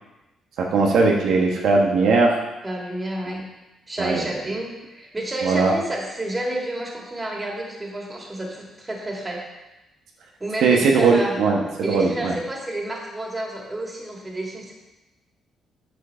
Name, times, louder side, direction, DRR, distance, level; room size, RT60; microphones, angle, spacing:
voice 1, 0.6-2.4 4.0-4.2 5.4-5.7 10.6-11.6 11.9-12.3, right 4 dB, 75° right, 0 dB, 1.3 m, -19 dB
voice 2, 2.6-3.5 3.9-9.6 10.4-11.4 11.8-14.7, right 1 dB, 20° right, -1 dB, 2.7 m, -30 dB
9.4 x 5.1 x 6.9 m, 1.0 s
cardioid pair, 90°, 0 cm